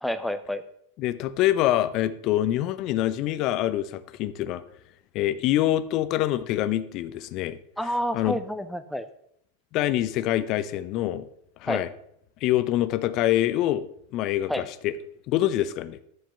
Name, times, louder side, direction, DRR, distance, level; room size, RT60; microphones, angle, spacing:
voice 1, 0.0-0.6 7.8-9.1 11.7-11.8 14.5-14.6, equal, ahead, 9 dB, 0.6 m, -29 dB
voice 2, 1.0-4.6 5.1-7.6 8.1-8.4 9.7-11.3 11.6-11.9 12.4-14.9 15.3-16.0, left 13 dB, 40° left, 14 dB, 0.7 m, -25 dB
10.0 x 7.5 x 5.7 m, 0.71 s
figure-of-eight pair, 90°, 0 cm